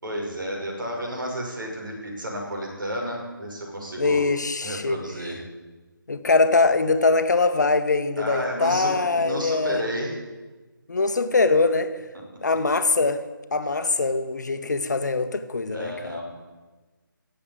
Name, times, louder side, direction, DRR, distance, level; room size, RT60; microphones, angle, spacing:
voice 1, 0.0-4.2 4.6-5.4 8.2-10.2 15.7-16.2, equal, 65° right, 0 dB, 5.8 m, -31 dB
voice 2, 4.0-5.0 6.1-9.8 10.9-11.9 12.4-13.2 13.5-15.9, left 3 dB, 55° left, 9 dB, 1.1 m, -22 dB
17.0 x 7.8 x 8.9 m, 1.3 s
hypercardioid pair, 180°, 12 cm